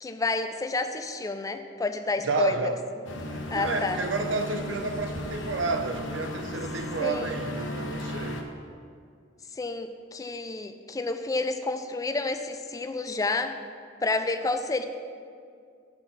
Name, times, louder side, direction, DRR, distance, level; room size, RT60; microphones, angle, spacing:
voice 1, 0.0-2.7 3.5-4.0 7.0-7.3 9.5-13.6 14.0-14.8, left 3 dB, 20° left, 0.4 m, -29 dB
voice 2, 2.2-2.8 3.3-8.5, right 3 dB, 75° right, 0.6 m, -30 dB
sound 1, 3.0-8.4, left 1 dB, 85° left, 0.9 m, -35 dB
8.2 x 4.0 x 7.0 m
head